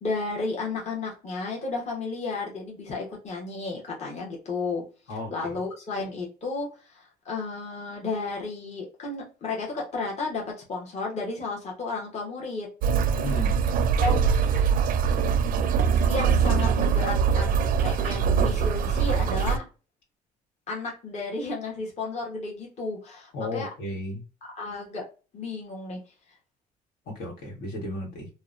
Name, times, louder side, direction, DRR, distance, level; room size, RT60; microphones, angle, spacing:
voice 1, 0.0-4.8 5.3-12.7 14.0-14.7 16.1-19.6 20.7-23.7 24.5-25.0 25.3-26.0, left 3 dB, 40° left, 1.0 m, -33 dB
voice 2, 5.1-5.6 13.1-13.6 23.3-24.2 27.1-28.3, left 2 dB, 75° left, 1.3 m, -34 dB
sound 1, 12.8-19.6, right 6 dB, 55° right, 0.4 m, -23 dB
2.7 x 2.1 x 2.4 m
cardioid pair, 110°, 17 cm